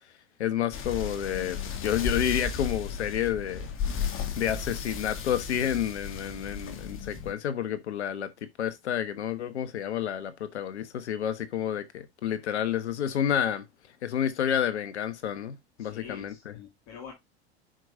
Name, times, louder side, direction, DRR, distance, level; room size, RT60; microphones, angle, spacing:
voice 1, 0.4-3.7 4.4-13.6 14.0-16.5, left 9 dB, 85° left, 1.2 m, -30 dB
sound 1, 0.7-7.3, left 6 dB, 40° left, 1.9 m, -34 dB
voice 2, 15.8-17.1, left 7 dB, 60° left, 2.6 m, -45 dB
8.9 x 6.4 x 2.6 m
hypercardioid pair, 90°, 33 cm